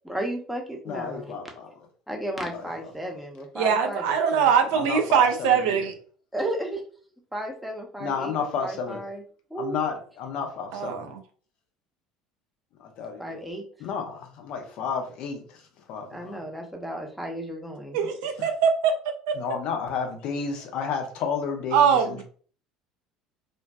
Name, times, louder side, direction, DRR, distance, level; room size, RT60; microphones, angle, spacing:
voice 1, 0.0-1.3 2.1-4.0 4.3-4.5 6.3-6.8 7.3-9.2 9.5-9.8 13.2-13.6 16.1-18.0, right 1 dB, 5° right, 0.7 m, -33 dB
voice 2, 0.9-1.7 2.5-2.7 4.7-5.8 8.0-9.0 9.6-11.1 12.8-13.4 13.8-15.4 15.9-16.4 18.4-18.5 19.4-22.2, left 6 dB, 55° left, 0.5 m, -31 dB
voice 3, 3.6-5.9 10.7-11.2 17.9-19.4 21.7-22.2, right 7 dB, 60° right, 0.3 m, -22 dB
2.5 x 2.1 x 2.2 m
figure-of-eight pair, 60°, 2 cm